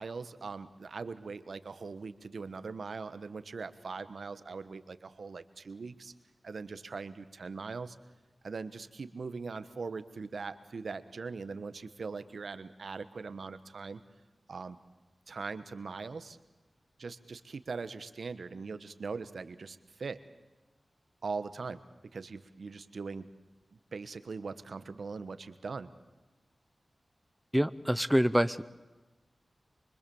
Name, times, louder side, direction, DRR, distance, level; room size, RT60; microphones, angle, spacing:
voice 1, 0.0-6.1 6.4-8.0 8.4-14.0 14.5-14.8 15.3-16.4 17.0-20.2 21.2-21.8 22.1-23.3 23.9-25.9, right 4 dB, 75° right, 13 dB, 1.3 m, -41 dB
voice 2, 27.5-28.6, equal, 5° right, 14 dB, 0.9 m, -26 dB
25.0 x 24.0 x 7.2 m, 1.1 s
cardioid pair, 55°, 0 cm